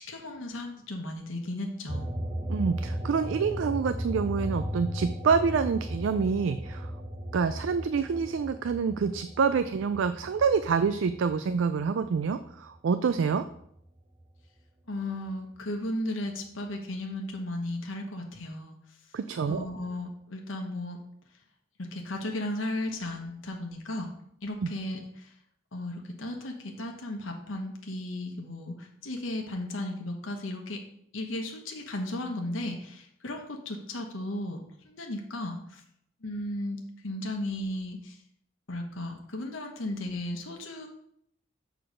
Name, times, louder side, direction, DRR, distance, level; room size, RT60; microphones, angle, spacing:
voice 1, 0.0-2.1 14.9-18.8 19.5-21.0 21.8-24.1 24.4-25.3 25.7-30.8 31.1-34.6 34.8-35.8 36.2-38.2 38.7-40.9, left 1 dB, 85° left, 2 dB, 1.1 m, -35 dB
sound 1, 1.9-12.8 13.2-14.6, equal, 15° right, 1.0 m, -36 dB
voice 2, 2.5-6.9 7.3-13.5 19.1-19.6 24.6-24.7, right 5 dB, 75° right, 11 dB, 0.4 m, -27 dB
6.8 x 3.9 x 6.2 m, 0.71 s
head